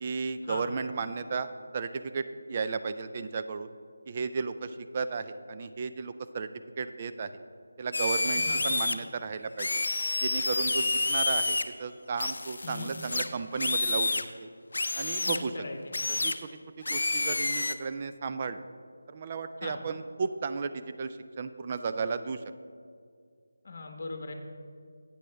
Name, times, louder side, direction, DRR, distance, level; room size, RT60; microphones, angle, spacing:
voice 1, 0.0-1.5 1.7-3.7 4.1-6.5 6.8-7.3 7.8-9.7 10.2-14.1 14.4-14.5 15.0-15.5 16.2-16.5 16.9-18.6 19.1-22.4, right 5 dB, 30° right, 10 dB, 0.4 m, -34 dB
sound 1, 7.9-8.9 9.6-11.6 12.2-14.3 14.7-15.4 15.9-16.3 16.8-17.7, left 2 dB, 65° left, 0.5 m, -29 dB
voice 2, 8.3-8.6 12.6-12.9 15.2-15.9 19.6-19.8 23.6-24.3, left 3 dB, 45° left, 4 dB, 1.2 m, -40 dB
12.0 x 8.5 x 3.4 m, 2.2 s
figure-of-eight pair, 170°, 0 cm